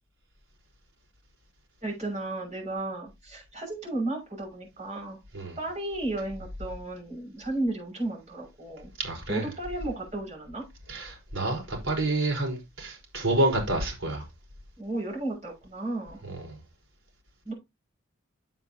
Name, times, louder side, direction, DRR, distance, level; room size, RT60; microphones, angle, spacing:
voice 1, 1.8-5.2 5.6-8.9 9.3-10.6 14.8-16.2 17.4-17.5, right 2 dB, 35° right, 6.4 m, -33 dB
voice 2, 9.0-9.5 10.9-14.2 16.3-16.6, right 2 dB, 70° right, 4.9 m, -28 dB
9.5 x 7.9 x 2.9 m
head